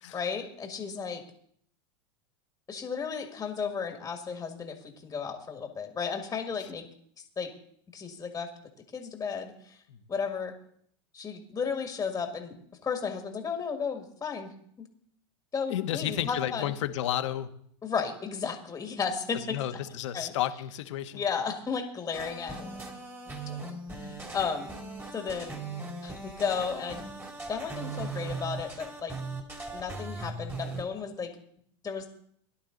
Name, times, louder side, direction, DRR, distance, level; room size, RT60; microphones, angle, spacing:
voice 1, 0.1-1.2 2.7-6.8 7.4-7.5 7.9-8.5 8.9-9.8 10.1-10.5 11.1-14.5 14.8-14.9 15.5-16.7 17.8-19.8 20.1-20.3 21.1-22.8 23.3-24.7 25.1-25.6 26.0-27.0 27.5-29.1 29.7-31.3 31.8-32.1, left 6 dB, 20° left, 4 dB, 1.9 m, -34 dB
voice 2, 15.7-17.5 19.5-21.2, left 12 dB, 75° left, 8 dB, 1.3 m, -31 dB
sound 1, 22.1-30.8, right 3 dB, 15° right, 2.9 m, -39 dB
18.0 x 11.0 x 4.0 m, 0.66 s
supercardioid pair, 120°, 16 cm